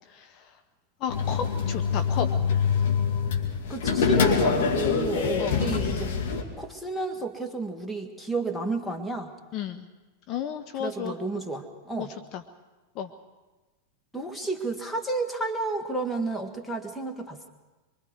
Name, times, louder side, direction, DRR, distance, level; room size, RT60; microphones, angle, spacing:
voice 1, 0.1-0.5 1.0-2.3 5.4-5.7 9.5-9.9 10.3-11.1 12.0-12.4 12.9-13.1, left 8 dB, 40° left, 7 dB, 0.9 m, -33 dB
sound 1, 1.1-6.4, left 6 dB, 55° left, 2.5 m, -25 dB
voice 2, 3.7-6.1 6.6-9.3 10.8-12.1 14.1-17.5, right 3 dB, 5° left, 4 dB, 1.9 m, -31 dB
24.0 x 24.0 x 4.8 m, 1.2 s
figure-of-eight pair, 90°, 0 cm